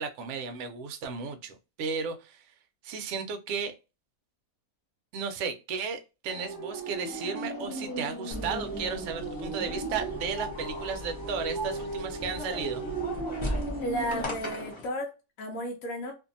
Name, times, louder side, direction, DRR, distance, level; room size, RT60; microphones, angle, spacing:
voice 1, 0.0-2.4 2.8-3.8 5.1-12.8, right 5 dB, 70° right, 0.7 m, -34 dB
sound 1, 6.3-14.2, right 3 dB, 15° right, 0.9 m, -37 dB
sound 2, 8.3-14.9, equal, 50° left, 0.3 m, -38 dB
voice 2, 13.8-15.1 15.4-16.1, equal, 65° left, 0.9 m, -33 dB
2.6 x 2.5 x 2.5 m
omnidirectional pair, 1.7 m